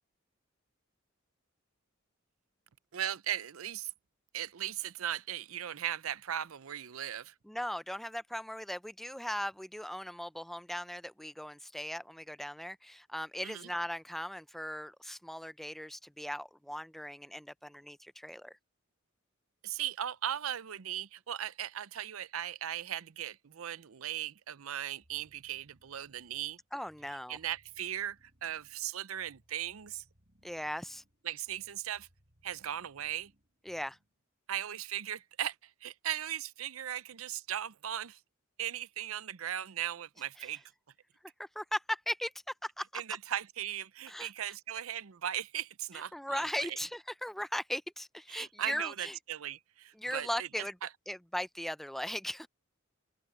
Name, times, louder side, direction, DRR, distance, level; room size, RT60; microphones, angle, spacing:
voice 1, 2.9-3.9 4.3-7.3 13.4-13.7 19.6-26.6 27.3-30.0 31.2-32.1 32.4-33.3 34.5-35.5 35.8-38.2 38.6-40.6 42.9-46.8 48.3-50.9, right 11 dB, 85° right, 0.6 m, -38 dB
voice 2, 7.4-18.5 26.7-27.4 30.4-31.0 33.7-34.0 40.4-40.5 41.4-42.3 42.6-43.0 44.1-44.3 46.1-49.2 50.0-50.8 51.1-52.5, equal, ahead, 0.4 m, -38 dB
sound 1, 25.0-34.2, equal, 45° right, 5.5 m, -70 dB
open air
head